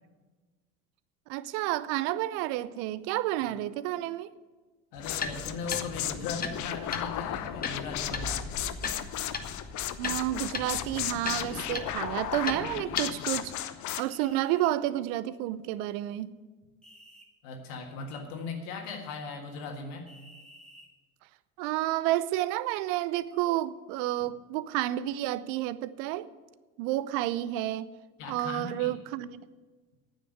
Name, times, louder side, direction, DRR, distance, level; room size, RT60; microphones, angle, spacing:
voice 1, 1.3-4.3 10.0-13.5 14.0-16.3 21.6-26.3 26.8-27.9 28.3-29.4, right 14 dB, 60° right, 17 dB, 0.6 m, -30 dB
voice 2, 4.9-8.5 17.4-20.1 28.2-28.9, left 4 dB, 65° left, 3 dB, 1.8 m, -38 dB
sound 1, 5.0-14.0, left 12 dB, 45° left, 0.8 m, -35 dB
sound 2, 5.1-13.0, left 4 dB, 20° left, 1.1 m, -38 dB
sound 3, 11.0-11.9 14.1-14.7 16.8-17.3 20.1-20.9, equal, ahead, 2.1 m, -54 dB
9.4 x 7.3 x 9.0 m, 1.3 s
hypercardioid pair, 70°, 40 cm